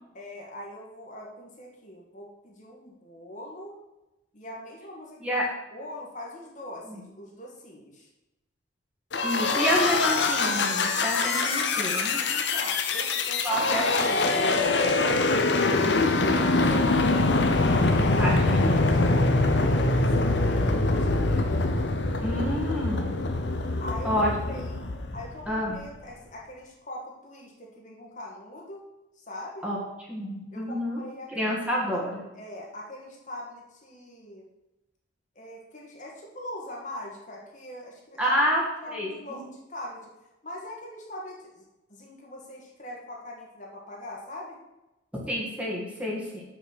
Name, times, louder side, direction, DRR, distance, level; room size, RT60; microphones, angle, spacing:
voice 1, 0.1-3.8 4.3-5.4 5.7-8.1 12.3-13.6 14.0-21.5 23.8-24.8 25.1-28.8 29.3-29.7 30.5-31.6 31.9-32.0 32.3-34.5 35.4-38.4 38.8-40.1 40.4-44.6, left 1 dB, 40° left, -2 dB, 1.9 m, -42 dB
sound 1, 9.1-25.7, left 3 dB, 65° left, 0.9 m, -24 dB
voice 2, 9.2-12.2 13.4-14.4 18.2-19.1 22.2-23.2 24.0-24.3 25.5-25.8 29.6-31.0 31.3-32.2 38.2-38.6 38.9-39.5 45.1-46.4, equal, 5° right, -3 dB, 1.9 m, -29 dB
7.0 x 6.1 x 6.3 m, 0.96 s
head